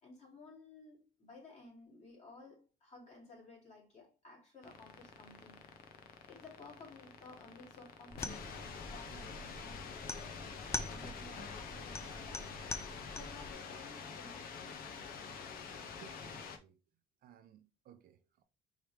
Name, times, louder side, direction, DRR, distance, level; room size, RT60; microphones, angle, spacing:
voice 1, 0.0-5.7 6.3-10.5 10.8-12.6 13.1-14.6, left 3 dB, 45° left, 2.6 m, -55 dB
sound 1, 4.6-16.6, left 5 dB, 60° left, 0.8 m, -47 dB
sound 2, 8.1-13.5, left 2 dB, 15° left, 0.5 m, -44 dB
voice 2, 16.0-16.7 17.2-18.4, right 10 dB, 60° right, 0.6 m, -60 dB
4.9 x 3.2 x 3.2 m
cardioid pair, 110°, 17 cm